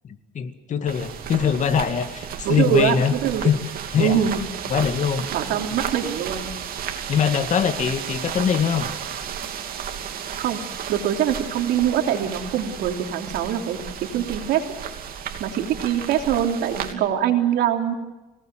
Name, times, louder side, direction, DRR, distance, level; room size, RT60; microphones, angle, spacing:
voice 1, 0.0-3.1 3.4-3.6 3.9-4.2 4.7-5.3 7.1-8.9, left 7 dB, 45° left, 8 dB, 2.3 m, -22 dB
sound 1, 0.9-16.9, right 8 dB, 60° right, 2.9 m, -33 dB
voice 2, 2.4-3.5 4.0-4.4 5.3-6.5 10.4-10.6 10.9-14.6 15.4-17.9, right 10 dB, 80° right, 4 dB, 3.2 m, -23 dB
25.5 x 18.5 x 7.8 m, 1.1 s
cardioid pair, 110°, 17 cm